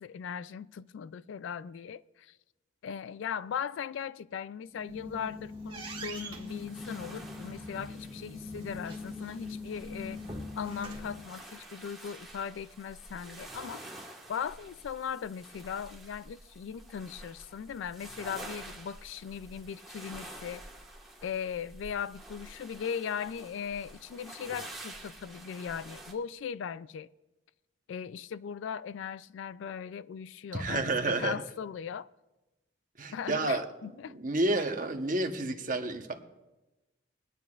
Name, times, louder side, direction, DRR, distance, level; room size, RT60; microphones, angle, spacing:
voice 1, 0.0-2.3 2.8-10.2 10.6-13.8 14.3-20.6 21.2-27.1 27.9-32.1 33.1-34.2, left 7 dB, 70° left, 0.3 m, -38 dB
sound 1, 4.7-11.2, left 2 dB, 25° right, 1.7 m, -41 dB
sound 2, 6.5-26.1, right 1 dB, ahead, 1.4 m, -49 dB
voice 2, 30.5-31.4 33.0-36.1, right 2 dB, 40° right, 1.0 m, -30 dB
22.5 x 9.6 x 2.4 m
head